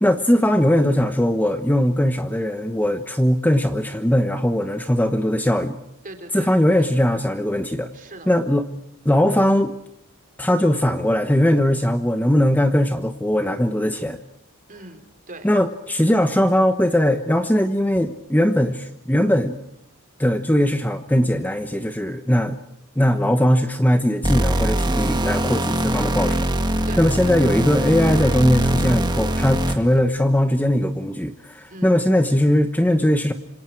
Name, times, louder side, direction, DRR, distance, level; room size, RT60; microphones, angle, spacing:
voice 1, 0.0-5.7 6.3-7.9 8.3-8.7 9.0-9.7 10.4-14.2 15.4-19.6 20.2-22.6 22.9-33.3, equal, 10° left, 8 dB, 1.1 m, -20 dB
voice 2, 6.0-6.9 7.9-8.3 14.7-15.5 26.9-27.4 31.7-32.0, right 2 dB, 40° right, 6 dB, 3.8 m, -40 dB
sound 1, 24.2-30.0, right 1 dB, 20° right, 1.9 m, -22 dB
27.0 x 26.5 x 4.7 m, 0.77 s
head